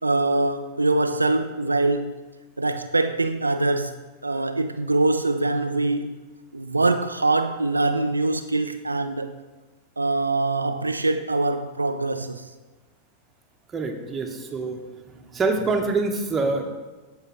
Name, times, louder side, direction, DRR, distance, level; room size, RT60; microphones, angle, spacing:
voice 1, 0.0-2.1 2.6-6.2 6.5-9.3 10.0-12.5, right 2 dB, 80° right, 0.3 m, -23 dB
voice 2, 13.7-14.8 15.1-16.7, right 3 dB, 20° right, 1.0 m, -25 dB
13.5 x 4.8 x 3.1 m
figure-of-eight pair, 90°, 0 cm